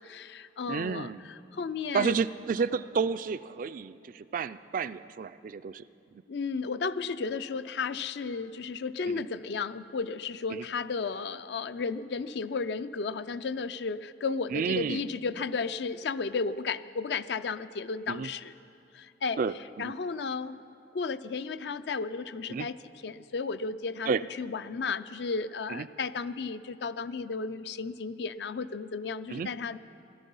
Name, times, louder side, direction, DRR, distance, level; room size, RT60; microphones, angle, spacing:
voice 1, 0.0-2.2 6.3-18.5 18.9-19.4 19.8-20.6 20.9-22.8 23.0-24.1 24.4-29.8, left 4 dB, 65° left, 13 dB, 0.4 m, -33 dB
voice 2, 0.7-1.2 1.9-5.8 9.1-9.2 10.5-10.6 14.5-15.0 18.1-18.3 19.4-19.9 22.5-22.7 24.1-24.2 25.7-25.9 29.3-29.5, right 5 dB, 50° right, 14 dB, 0.3 m, -31 dB
17.0 x 12.5 x 5.5 m, 2.7 s
head